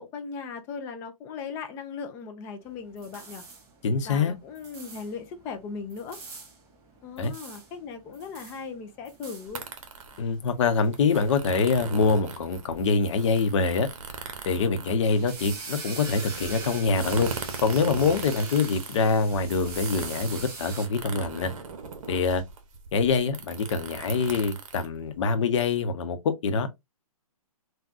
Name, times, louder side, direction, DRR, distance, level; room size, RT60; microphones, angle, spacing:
voice 1, 0.0-3.4 4.0-6.2 7.0-9.6, left 5 dB, 15° left, 0.3 m, -38 dB
sound 1, 2.6-20.9, right 4 dB, 20° right, 1.0 m, -44 dB
voice 2, 3.8-4.4 7.2-7.3 10.2-13.9 14.5-17.3 17.6-21.5 22.1-22.4 22.9-26.2 26.4-26.7, left 4 dB, 55° left, 0.7 m, -25 dB
sound 2, 9.5-25.5, right 5 dB, 60° right, 0.9 m, -39 dB
3.6 x 2.2 x 2.5 m
hypercardioid pair, 150°, 19 cm